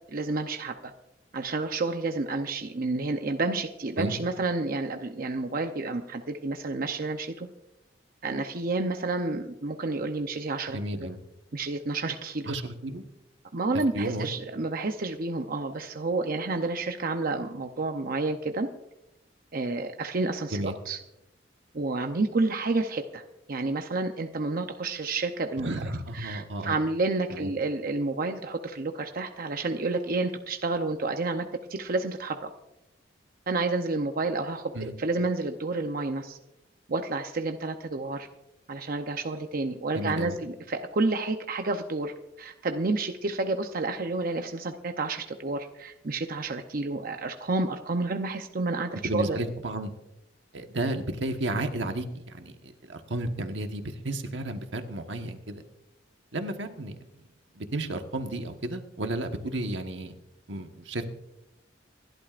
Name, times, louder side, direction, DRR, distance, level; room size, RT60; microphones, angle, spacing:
voice 1, 0.1-0.9 1.3-7.5 8.2-11.1 11.5-12.6 13.5-18.7 19.5-21.0 21.7-23.2 23.5-25.7 26.1-32.5 33.5-36.4 36.9-38.3 38.7-49.4, right 3 dB, 50° right, 5 dB, 0.7 m, -30 dB
voice 2, 10.7-11.2 12.5-13.0 13.9-14.3 20.5-20.7 25.6-26.8 27.3-27.5 34.7-34.9 39.9-40.4 48.9-49.9 50.5-55.6 56.3-57.0 57.5-60.2 60.5-61.1, right 1 dB, 80° right, 5 dB, 1.3 m, -32 dB
27.5 x 12.0 x 2.5 m, 0.90 s
head